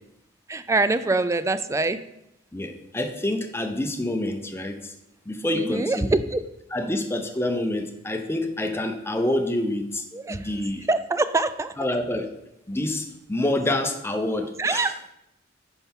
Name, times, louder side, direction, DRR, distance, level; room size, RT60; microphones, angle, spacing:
voice 1, 0.5-2.0 5.5-6.4 10.1-10.5 10.9-11.7 14.6-15.0, right 3 dB, 15° right, 12 dB, 0.3 m, -24 dB
voice 2, 2.5-4.9 5.3-6.2 6.7-10.9 11.8-12.4 12.7-14.9, left 1 dB, 15° left, 6 dB, 0.7 m, -27 dB
9.8 x 5.8 x 3.7 m, 0.83 s
head